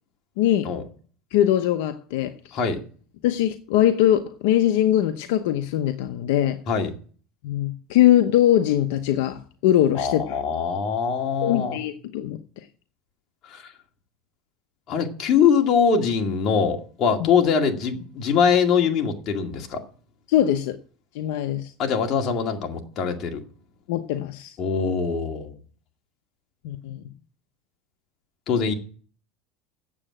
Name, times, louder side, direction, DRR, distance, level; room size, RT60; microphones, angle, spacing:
voice 1, 0.4-0.7 1.3-2.6 3.2-6.6 7.4-10.4 11.4-12.4 17.2-17.3 20.3-20.8 21.1-21.7 23.9-24.6 26.6-27.0, left 12 dB, 80° left, 0.8 m, -21 dB
voice 2, 9.9-11.8 13.5-13.6 14.9-19.8 21.8-23.4 24.6-25.5 28.5-28.7, left 6 dB, 45° left, 2.2 m, -22 dB
8.6 x 7.6 x 8.7 m
supercardioid pair, 120°, 0 cm